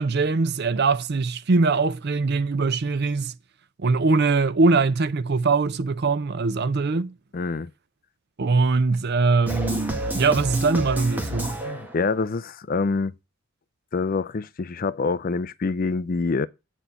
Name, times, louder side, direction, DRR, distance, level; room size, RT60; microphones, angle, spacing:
voice 1, 0.0-3.3 3.8-7.1 8.4-11.5, right 4 dB, 50° right, 0.5 m, -22 dB
voice 2, 7.3-7.7 11.6-13.1 13.9-16.5, left 4 dB, 40° left, 0.4 m, -26 dB
sound 1, 9.5-12.1, equal, 10° right, 1.5 m, -29 dB
9.0 x 4.3 x 6.9 m
head